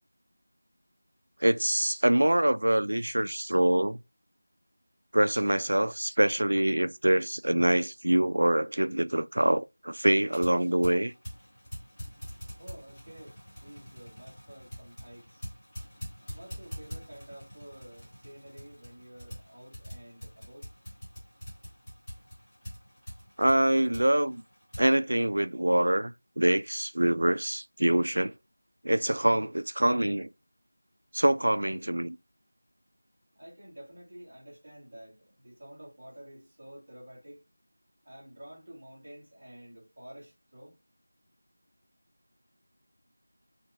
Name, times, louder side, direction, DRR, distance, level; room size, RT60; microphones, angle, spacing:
voice 1, 1.4-4.0 5.1-11.1 23.4-24.4 24.8-28.3 28.8-30.3 31.1-32.2, right 1 dB, 65° right, 0.3 m, -25 dB
sound 1, 10.2-24.9, equal, 5° left, 1.4 m, -45 dB
voice 2, 12.6-15.4 16.3-20.7 33.4-37.4 38.0-40.8, right 1 dB, 25° right, 1.9 m, -50 dB
5.4 x 2.3 x 3.5 m
figure-of-eight pair, 180°, 0 cm